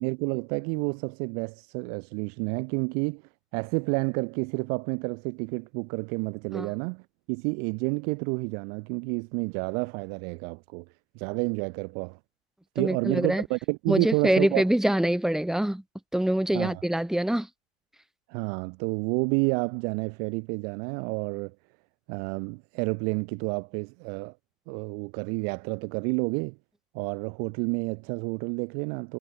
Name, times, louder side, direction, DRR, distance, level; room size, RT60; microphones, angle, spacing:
voice 1, 0.0-3.2 3.5-7.0 7.3-10.9 11.2-12.2 12.8-14.6 16.5-16.8 18.3-21.5 22.1-24.3 24.7-26.6 26.9-29.2, right 40 dB or more, 25° right, 0.4 m, -30 dB
voice 2, 12.8-13.4 13.9-15.8 16.1-17.5, right 1 dB, ahead, 1.3 m, -25 dB
hypercardioid pair, 110°, 41 cm